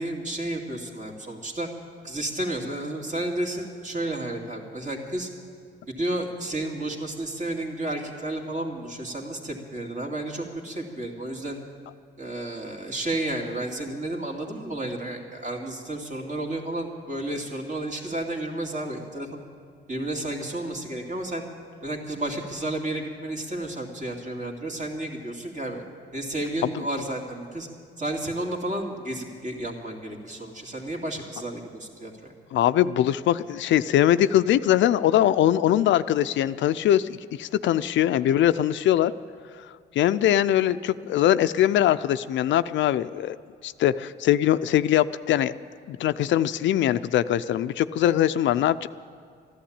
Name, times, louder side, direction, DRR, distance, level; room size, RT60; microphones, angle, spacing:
voice 1, 0.0-1.7 2.0-5.3 5.9-11.6 12.2-19.4 19.9-21.4 21.8-25.8 26.1-27.7 28.0-32.3, right 1 dB, 40° right, 2 dB, 2.5 m, -32 dB
voice 2, 32.5-39.1 40.0-43.4 43.6-45.5 45.9-48.9, left 12 dB, 70° left, 13 dB, 0.5 m, -22 dB
14.0 x 11.5 x 8.8 m, 2.2 s
cardioid pair, 90°, 20 cm